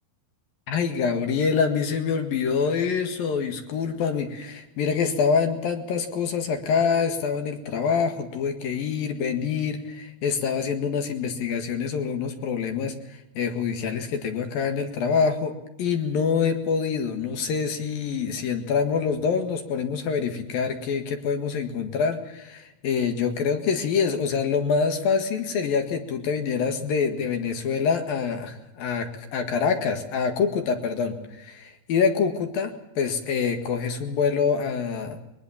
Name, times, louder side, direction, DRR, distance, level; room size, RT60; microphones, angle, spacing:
voice 1, 0.7-15.5 15.8-35.2, left 6 dB, 60° left, 6 dB, 3.2 m, -26 dB
22.5 x 20.0 x 7.2 m, 0.91 s
omnidirectional pair, 5.3 m